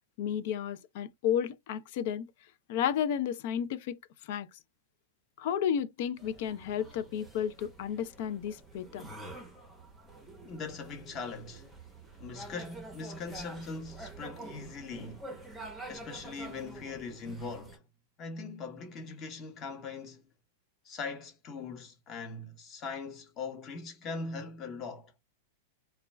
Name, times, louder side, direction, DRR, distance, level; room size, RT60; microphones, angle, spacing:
voice 1, 0.2-2.3 2.7-4.0 4.3-4.5 5.4-9.1, left 9 dB, 55° left, 0.4 m, -32 dB
sound 1, 6.2-17.8, right 2 dB, 5° right, 0.7 m, -48 dB
voice 2, 10.4-11.7 12.2-15.3 15.9-17.8 18.2-20.2 20.8-25.1, left 4 dB, 25° left, 0.9 m, -41 dB
2.3 x 2.2 x 3.1 m
supercardioid pair, 155°, 0 cm